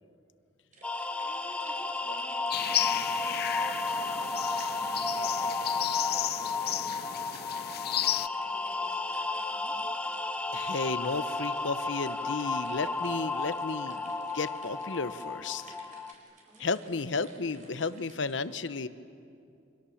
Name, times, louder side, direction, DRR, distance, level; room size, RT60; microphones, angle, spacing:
sound 1, 0.7-18.4, right 2 dB, 40° right, 4.5 m, -56 dB
sound 2, 0.8-16.1, left 3 dB, 5° left, 0.8 m, -33 dB
voice 1, 1.2-5.5 6.1-9.2 9.5-9.8 16.4-16.9, equal, 10° right, -7 dB, 4.5 m, -54 dB
sound 3, 2.5-8.3, left 12 dB, 55° left, 0.6 m, -33 dB
voice 2, 10.5-15.6 16.6-18.9, left 4 dB, 80° left, 13 dB, 0.9 m, -33 dB
29.0 x 24.5 x 7.2 m, 2.5 s
head